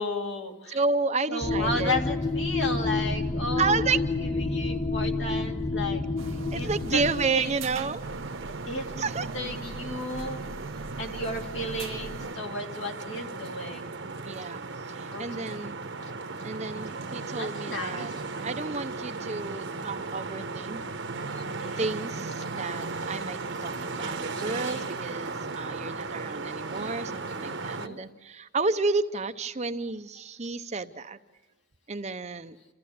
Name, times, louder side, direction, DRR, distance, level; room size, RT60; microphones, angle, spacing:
voice 1, 0.0-0.8 1.3-3.8 4.5-6.0 6.5-7.0 7.3-7.5 8.4-9.1 9.3-10.4 11.0-13.9 15.1-15.6 17.3-18.2 21.3-21.8 24.3-24.9 27.4-28.0, left 2 dB, 60° left, 2 dB, 2.6 m, -34 dB
voice 2, 0.7-1.9 3.6-4.0 6.0-6.1 6.5-8.0 9.0-9.3 14.2-15.8 16.4-18.1 18.4-20.8 21.8-31.2 31.9-32.6, right 4 dB, 35° right, 9 dB, 0.7 m, -31 dB
sound 1, 1.4-7.3, left 3 dB, 25° left, 0.8 m, -29 dB
sound 2, 6.2-12.3, right 3 dB, 80° right, 0.8 m, -39 dB
sound 3, 8.0-27.9, right 3 dB, 60° right, 1.1 m, -36 dB
28.5 x 14.5 x 8.5 m, 1.2 s
head